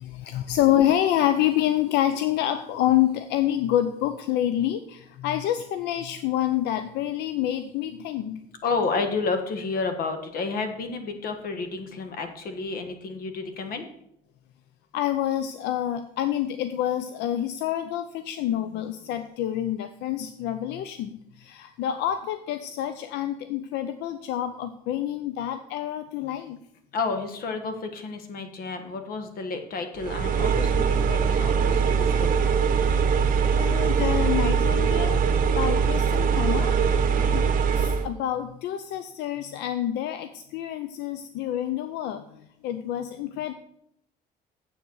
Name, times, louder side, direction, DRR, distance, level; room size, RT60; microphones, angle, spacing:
voice 1, 0.0-8.4 14.9-26.6 33.5-36.8 37.2-37.5 37.8-43.5, left 12 dB, 85° left, 10 dB, 0.6 m, -27 dB
voice 2, 8.6-13.9 26.9-32.4, left 4 dB, 60° left, 7 dB, 1.5 m, -31 dB
sound 1, 30.0-38.1, right 6 dB, 55° right, 1.1 m, -22 dB
8.0 x 7.3 x 6.3 m, 0.74 s
cardioid pair, 110°, 17 cm